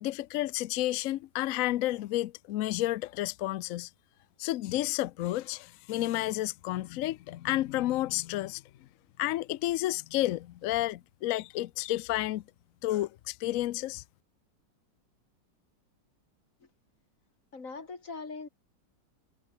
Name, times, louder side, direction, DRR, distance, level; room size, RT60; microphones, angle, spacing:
voice 1, 0.0-3.9 4.4-8.6 9.2-12.4 12.8-14.0, left 15 dB, 75° left, 0.7 m, -31 dB
voice 2, 17.5-18.5, left 4 dB, 45° left, 3.3 m, -41 dB
omnidirectional pair, 1.9 m